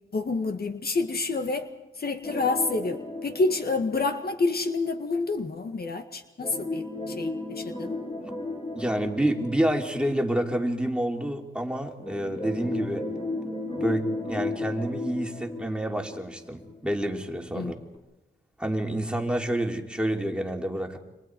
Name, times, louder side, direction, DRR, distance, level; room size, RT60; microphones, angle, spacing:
voice 1, 0.1-1.7 2.0-7.9 17.5-17.7, left 3 dB, 50° left, 6 dB, 1.8 m, -28 dB
sound 1, 2.2-4.9 6.4-10.7 12.0-16.9 17.2-17.3 17.9-18.0, left 2 dB, 30° left, 7.1 m, -35 dB
voice 2, 8.7-13.0 13.8-17.7 18.6-21.0, right 1 dB, 5° right, 2 dB, 3.2 m, -28 dB
30.0 x 26.0 x 4.7 m, 1.0 s
wide cardioid pair, 105°, 21 cm